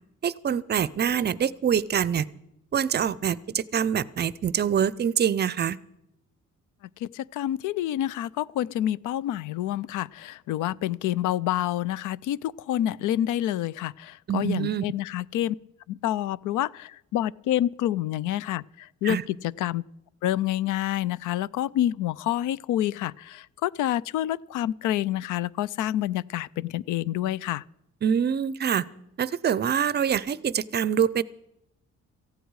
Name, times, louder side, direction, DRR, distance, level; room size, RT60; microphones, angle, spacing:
voice 1, 0.2-2.3 2.7-5.8 14.3-14.8 19.0-19.2 28.0-28.9 29.2-31.2, right 8 dB, 35° right, 20 dB, 0.5 m, -25 dB
voice 2, 7.0-15.6 15.9-19.8 20.2-27.6, left 12 dB, 85° left, 22 dB, 0.5 m, -28 dB
18.0 x 15.0 x 4.8 m, 0.83 s
cardioid pair, 135°, 29 cm